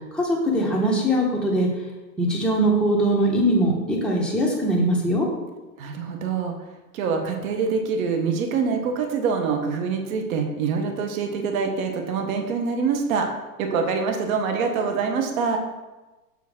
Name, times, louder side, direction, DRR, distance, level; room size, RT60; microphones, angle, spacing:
voice 1, 0.1-1.7 2.2-5.3, right 1 dB, ahead, -4 dB, 1.1 m, -21 dB
voice 2, 5.8-6.5 6.9-13.3 13.6-15.6, right 5 dB, 55° right, 4 dB, 1.1 m, -25 dB
5.8 x 4.8 x 3.6 m, 1.1 s
hypercardioid pair, 115°, 49 cm